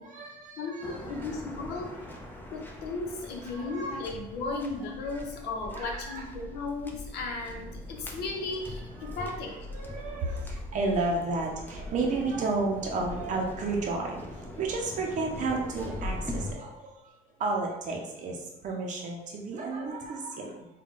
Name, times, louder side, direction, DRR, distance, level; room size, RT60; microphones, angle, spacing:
voice 1, 0.0-1.3 3.5-4.0 5.7-6.2 9.0-20.7, right 3 dB, 45° right, -1 dB, 0.6 m, -32 dB
voice 2, 0.6-1.9 2.5-9.6 9.9-10.0 19.8-19.9, left 3 dB, 80° left, 1 dB, 0.8 m, -35 dB
Waves surf, 0.8-16.5, left 1 dB, 10° left, 0.5 m, -41 dB
3.7 x 2.2 x 3.6 m, 0.94 s
cardioid pair, 110°, 17 cm